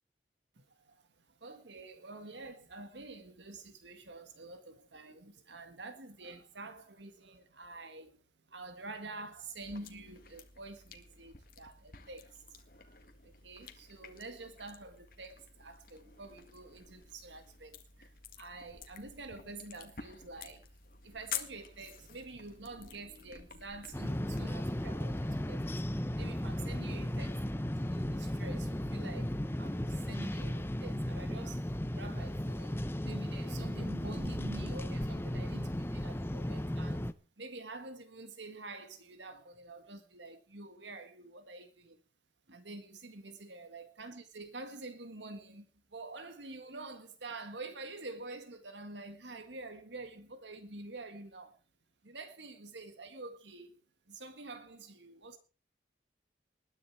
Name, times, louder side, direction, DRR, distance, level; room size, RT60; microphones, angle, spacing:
voice 1, 0.6-8.2 8.5-12.9 13.2-20.7 21.0-27.4 27.9-42.0 42.5-51.6 52.0-53.8 54.1-55.4, right 2 dB, 80° right, 1.8 m, -48 dB
sound 1, 9.6-24.7, left 8 dB, 50° left, 1.9 m, -49 dB
sound 2, 23.9-37.1, left 1 dB, 15° left, 0.7 m, -35 dB
20.5 x 10.0 x 4.7 m
head